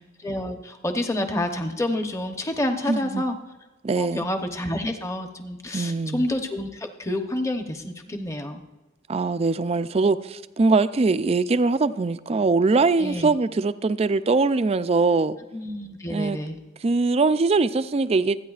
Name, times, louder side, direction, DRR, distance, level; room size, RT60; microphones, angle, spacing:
voice 1, 0.0-3.3 4.0-8.6 13.0-13.3 15.5-16.6, left 1 dB, 15° left, 0.8 m, -28 dB
voice 2, 2.9-3.2 3.8-4.3 5.7-6.3 9.1-15.4 16.1-16.4 16.8-18.4, right 3 dB, 30° right, 0.3 m, -22 dB
26.0 x 9.3 x 2.4 m
head